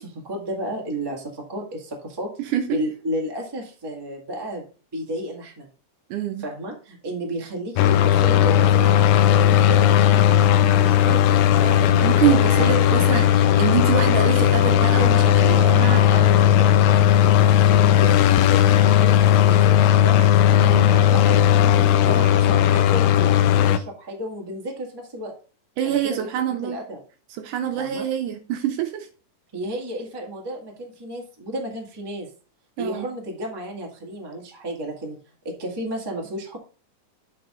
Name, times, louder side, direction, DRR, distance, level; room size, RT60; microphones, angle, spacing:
voice 1, 0.0-4.6 4.9-5.7 6.4-8.9 9.3-9.9 10.3-11.4 12.2-13.0 14.4-14.6 15.6-20.3 20.8-25.3 25.8-26.3 26.6-27.0 27.8-28.1 29.5-32.3 32.8-35.2 35.4-36.6, equal, 15° right, 0.9 m, -32 dB
voice 2, 6.1-6.4 11.6-13.3 13.6-16.0 20.6-20.9 25.8-26.8 27.4-29.1 32.8-33.1, right 10 dB, 75° right, 2.0 m, -25 dB
sound 1, 7.8-23.8, left 10 dB, 90° left, 2.4 m, -16 dB
8.5 x 5.5 x 3.7 m
omnidirectional pair, 4.0 m